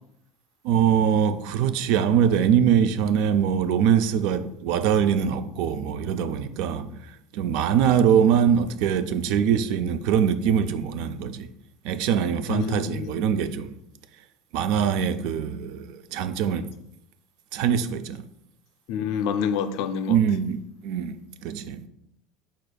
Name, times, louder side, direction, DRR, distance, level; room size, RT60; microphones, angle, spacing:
voice 1, 0.6-11.5 11.8-13.8 14.5-16.7 17.5-18.2 20.1-21.2 21.4-21.9, right 8 dB, 65° right, 0.3 m, -23 dB
voice 2, 12.5-13.3 18.9-20.2, left 7 dB, 60° left, 0.3 m, -28 dB
4.9 x 4.1 x 2.3 m
cardioid pair, 145°, 0 cm